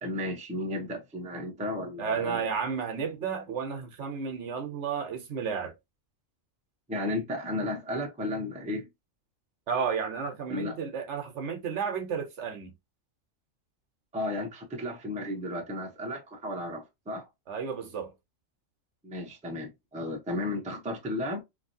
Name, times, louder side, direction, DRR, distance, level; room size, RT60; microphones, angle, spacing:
voice 1, 0.0-2.4 6.9-8.9 10.5-10.8 14.1-17.3 19.0-21.4, left 1 dB, 10° right, 0.5 m, -34 dB
voice 2, 2.0-5.7 9.7-12.7 17.5-18.1, right 6 dB, 65° right, 1.0 m, -32 dB
3.1 x 2.7 x 2.6 m
omnidirectional pair, 1.4 m